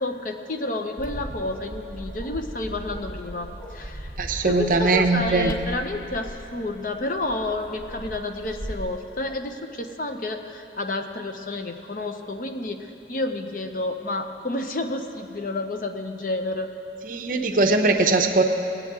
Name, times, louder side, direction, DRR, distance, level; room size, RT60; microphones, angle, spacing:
voice 1, 0.0-16.7, left 2 dB, 45° left, 6 dB, 0.6 m, -30 dB
Bark, 1.0-9.0, equal, 10° left, 1.2 m, -38 dB
voice 2, 4.2-5.5 17.1-18.4, right 3 dB, 45° right, 5 dB, 0.6 m, -20 dB
19.5 x 8.3 x 3.6 m, 2.8 s
head